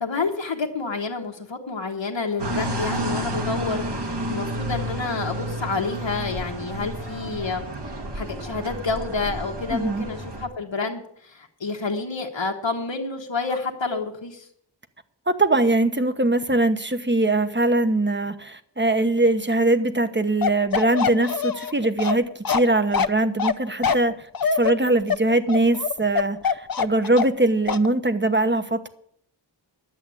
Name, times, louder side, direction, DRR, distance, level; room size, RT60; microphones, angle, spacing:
voice 1, 0.0-14.5, left 4 dB, 85° left, 1 dB, 1.4 m, -29 dB
sound 1, 2.4-10.5, right 1 dB, 65° right, 1.9 m, -30 dB
voice 2, 9.7-10.0 15.3-28.9, right 2 dB, 25° right, 10 dB, 1.1 m, -22 dB
Bark, 20.4-27.4 27.7-27.9, left 6 dB, 55° left, 0.7 m, -24 dB
11.0 x 7.9 x 8.3 m, 0.68 s
wide cardioid pair, 50°, 43 cm